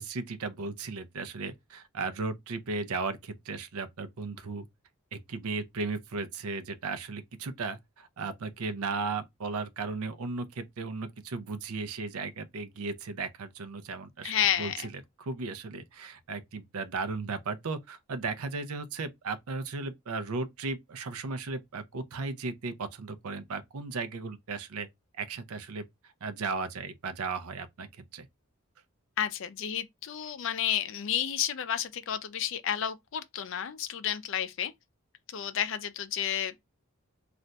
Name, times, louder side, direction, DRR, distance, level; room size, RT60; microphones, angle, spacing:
voice 1, 0.0-4.7 5.1-24.9 25.1-25.9 26.2-28.3, right 4 dB, 90° right, 0.5 m, -36 dB
voice 2, 14.2-14.8 29.2-34.7 35.3-36.6, left 9 dB, 60° left, 0.4 m, -31 dB
2.4 x 2.2 x 3.9 m
head